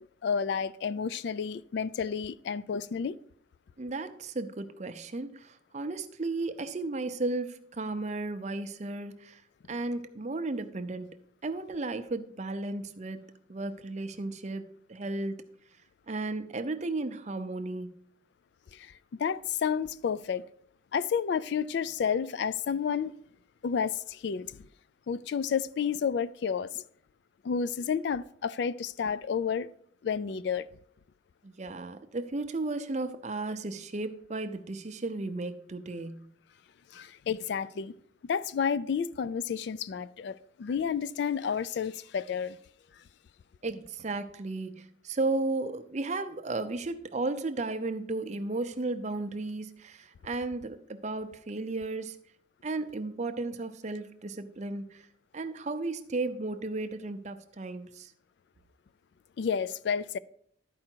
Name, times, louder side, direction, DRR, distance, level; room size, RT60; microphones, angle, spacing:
voice 1, 0.2-3.2 18.7-18.9 19.2-20.5 20.9-23.2 23.6-24.6 25.1-26.8 27.4-29.7 30.0-30.7 36.9-37.9 38.3-42.6 59.4-60.2, left 7 dB, 55° left, 0.3 m, -31 dB
voice 2, 3.8-9.4 9.7-11.2 11.4-15.4 16.1-18.0 31.4-36.3 43.6-52.2 52.6-55.1 55.3-58.1, right 2 dB, 35° right, 0.6 m, -34 dB
11.5 x 4.9 x 4.5 m
head